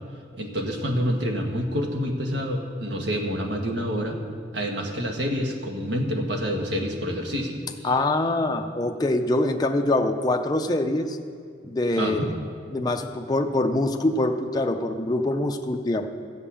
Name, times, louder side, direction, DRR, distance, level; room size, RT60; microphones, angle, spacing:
voice 1, 0.3-4.2 4.5-7.9 12.0-12.3, equal, 70° right, 2 dB, 1.5 m, -27 dB
voice 2, 7.8-11.2 11.6-12.3 12.7-16.1, left 2 dB, 20° left, 4 dB, 0.5 m, -24 dB
14.0 x 5.5 x 8.5 m, 2.2 s
head